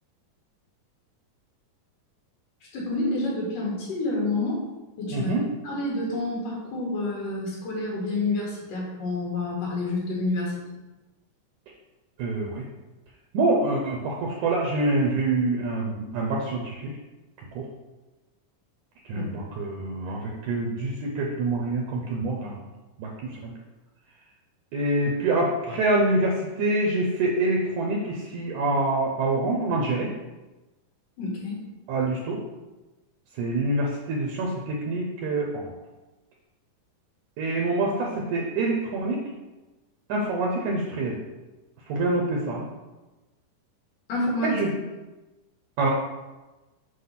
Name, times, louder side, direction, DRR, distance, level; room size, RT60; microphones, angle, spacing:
voice 1, 2.7-4.6 5.0-5.3 5.6-10.5 19.1-19.3 31.2-31.6 44.1-44.5, left 2 dB, 75° left, -5 dB, 3.6 m, -28 dB
voice 2, 5.1-5.5 12.2-12.6 13.3-16.9 17.5-17.7 19.1-22.6 23.0-23.5 24.7-30.1 31.9-32.4 33.4-35.7 37.4-39.3 40.1-41.2 41.9-42.7 44.4-44.7 45.8-45.9, right 2 dB, 70° right, -1 dB, 2.1 m, -26 dB
7.7 x 3.0 x 5.8 m, 1.1 s
omnidirectional pair, 3.8 m